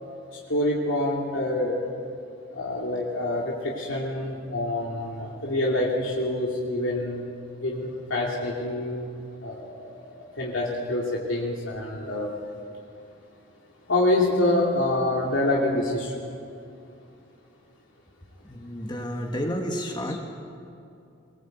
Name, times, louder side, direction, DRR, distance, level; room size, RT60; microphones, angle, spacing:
voice 1, 0.5-1.7 2.6-7.2 7.6-9.1 9.4-9.7 10.4-12.3 13.9-16.1 20.1-20.2, left 1 dB, 80° left, -4 dB, 2.7 m, -26 dB
voice 2, 18.4-20.2, equal, 20° left, 2 dB, 1.6 m, -31 dB
22.0 x 19.0 x 8.0 m, 2.6 s
head